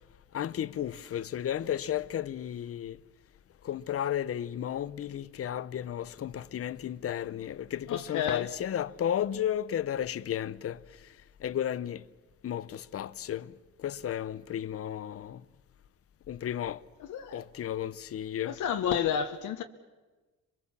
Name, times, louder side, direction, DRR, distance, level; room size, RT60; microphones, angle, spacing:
voice 1, 0.3-3.0 3.6-10.8 11.4-12.0 12.4-13.5 13.8-15.4 16.3-16.8 17.3-18.6, left 10 dB, 50° left, 0.7 m, -33 dB
voice 2, 7.9-8.5 17.1-17.4 18.4-19.6, left 8 dB, 80° left, 1.1 m, -30 dB
27.5 x 22.5 x 7.2 m
cardioid pair, 90°, 30 cm